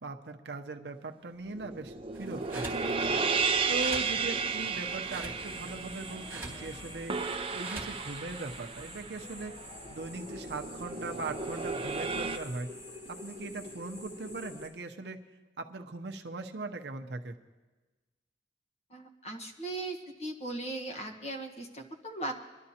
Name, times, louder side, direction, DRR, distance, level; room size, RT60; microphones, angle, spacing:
voice 1, 0.0-2.7 3.7-12.7 13.1-15.2 15.6-17.4, right 3 dB, 65° right, 5 dB, 0.7 m, -40 dB
sound 1, 1.5-12.4, right 5 dB, 30° right, 0.6 m, -34 dB
sound 2, 2.1-8.7, right 3 dB, 10° right, 1.6 m, -46 dB
sound 3, 5.4-14.7, left 2 dB, 65° left, 2.4 m, -47 dB
voice 2, 18.9-22.3, right 2 dB, 35° left, 4 dB, 1.3 m, -38 dB
23.5 x 11.5 x 2.8 m, 1.2 s
head